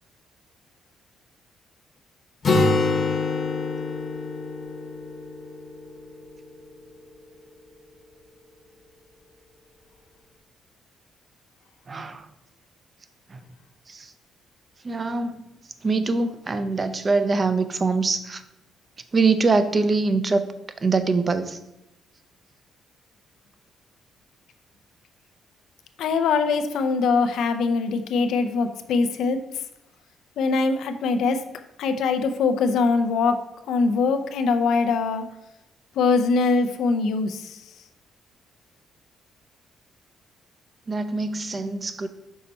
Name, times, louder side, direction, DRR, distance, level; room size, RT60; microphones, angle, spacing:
Acoustic guitar, 2.4-6.2, left 3 dB, 45° left, 0.9 m, -25 dB
voice 1, 11.9-12.3 13.3-13.4 13.9-14.1 14.8-15.4 15.8-18.4 19.1-20.5 20.8-21.6 40.9-42.1, right 3 dB, 35° right, 11 dB, 0.5 m, -23 dB
voice 2, 26.0-29.6 30.4-31.5 31.8-35.3 35.9-37.6, left 4 dB, 80° left, 8 dB, 0.5 m, -22 dB
5.6 x 4.2 x 4.0 m, 0.90 s
cardioid pair, 90°, 0 cm